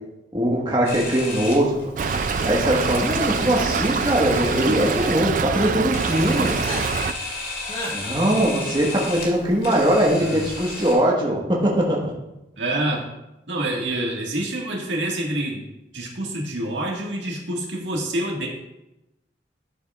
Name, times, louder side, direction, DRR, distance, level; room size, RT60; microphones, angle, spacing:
voice 1, 0.3-1.8 2.4-6.5 7.9-12.1, right 1 dB, 25° right, -3 dB, 1.4 m, -21 dB
Camera, 0.8-10.9, left 3 dB, 55° left, 2.6 m, -34 dB
Stream / Trickle dribble, 2.0-7.1, right 5 dB, 45° right, 0.3 m, -25 dB
sound 1, 3.1-3.9 4.4-4.9 5.4-5.7 6.6-6.8 7.7-7.9, left 1 dB, 30° left, 1.7 m, -34 dB
voice 2, 12.6-13.0 13.5-15.6 15.9-18.5, right 1 dB, 85° right, -1 dB, 1.8 m, -27 dB
13.0 x 7.2 x 2.4 m, 0.93 s
head